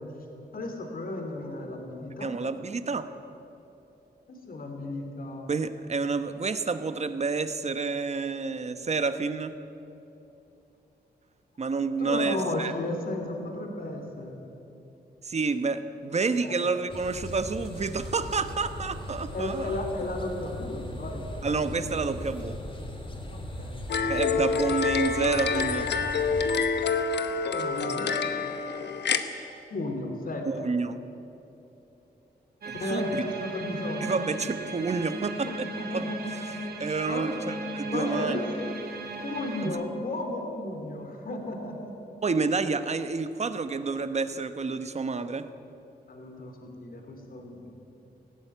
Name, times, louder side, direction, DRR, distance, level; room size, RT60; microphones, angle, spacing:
voice 1, 0.5-2.3 4.3-5.5 12.0-14.4 16.4-16.6 19.3-21.2 23.3-23.8 27.5-28.1 29.7-30.5 32.8-34.1 35.4-36.2 37.1-37.3 37.9-38.7 39.2-41.9 46.1-47.7, left 2 dB, 60° left, 3 dB, 3.2 m, -34 dB
voice 2, 2.2-3.1 5.5-9.5 11.6-12.7 15.2-19.7 21.4-22.6 24.1-25.9 30.4-31.0 32.7-33.1 34.0-36.1 36.8-38.4 39.6-39.8 42.2-45.5, right 4 dB, 40° right, 10 dB, 1.1 m, -29 dB
sound 1, 16.9-26.5, left 1 dB, 30° left, 3.4 m, -38 dB
sound 2, 23.9-29.2, left 5 dB, 85° left, 1.1 m, -27 dB
sound 3, 32.6-39.7, right 2 dB, 65° right, 2.9 m, -36 dB
18.5 x 16.0 x 9.3 m, 3.0 s
wide cardioid pair, 100°, 17 cm